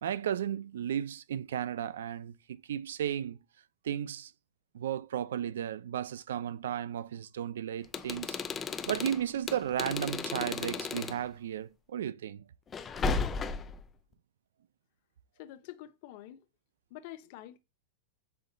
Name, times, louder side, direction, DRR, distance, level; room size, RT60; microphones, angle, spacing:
voice 1, 0.0-3.4 3.8-4.3 4.7-8.4 8.9-12.4, right 10 dB, 90° right, 0.4 m, -34 dB
sound 1, 7.8-11.2 12.7-13.8, left 4 dB, 20° left, 0.5 m, -34 dB
voice 2, 15.4-16.5 16.9-17.6, left 13 dB, 55° left, 0.8 m, -47 dB
5.7 x 2.3 x 3.9 m
supercardioid pair, 145°, 0 cm